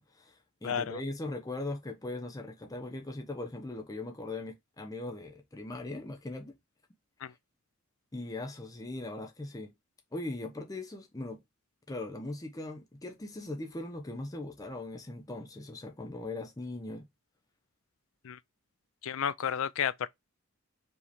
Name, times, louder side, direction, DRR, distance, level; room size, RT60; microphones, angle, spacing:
voice 1, 0.0-6.5 8.1-9.7 10.1-11.4 11.9-17.1, left 2 dB, 15° left, 0.6 m, -40 dB
voice 2, 0.6-1.0 7.2-7.3 18.2-18.4 19.0-20.1, left 8 dB, 65° left, 0.4 m, -32 dB
4.9 x 2.8 x 3.2 m
head